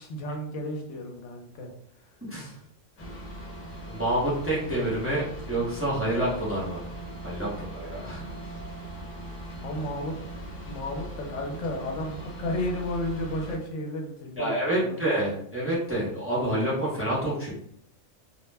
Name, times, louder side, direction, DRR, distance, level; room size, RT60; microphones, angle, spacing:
voice 1, 0.0-1.7 3.0-3.1 9.6-10.2 10.7-15.0, left 1 dB, 75° left, 1 dB, 0.9 m, -33 dB
voice 2, 2.2-2.6 3.9-6.9 7.2-8.2 14.4-17.5, right 1 dB, 15° right, -7 dB, 0.6 m, -28 dB
sound 1, 3.0-13.6, right 1 dB, 45° left, 0.7 m, -40 dB
2.4 x 2.1 x 3.2 m, 0.69 s
omnidirectional pair, 1.3 m